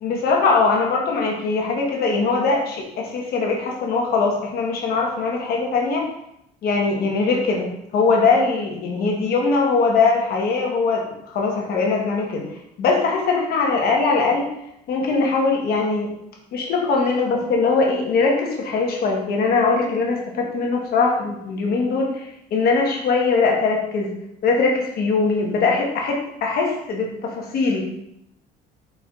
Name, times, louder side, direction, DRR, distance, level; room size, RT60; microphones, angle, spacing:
voice 1, 0.0-6.1 6.6-12.5 12.8-14.4 14.9-16.1 16.5-24.1 24.4-27.8, left 4 dB, 65° left, 0 dB, 1.1 m, -21 dB
4.7 x 4.2 x 2.4 m, 0.78 s
cardioid pair, 110°, 17 cm